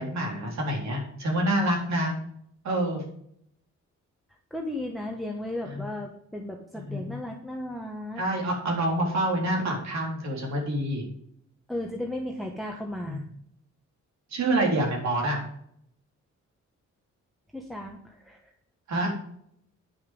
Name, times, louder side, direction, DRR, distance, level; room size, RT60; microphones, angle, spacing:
voice 1, 0.0-2.1 2.6-3.0 5.7-5.8 6.9-7.2 8.2-11.0 13.0-13.2 14.3-15.4 18.9-19.1, right 1 dB, 70° right, 0 dB, 3.8 m, -27 dB
voice 2, 4.5-8.2 11.7-13.2 17.5-18.4, left 1 dB, ahead, 1 dB, 1.1 m, -35 dB
9.7 x 6.5 x 5.2 m, 0.69 s
wide cardioid pair, 145°, 29 cm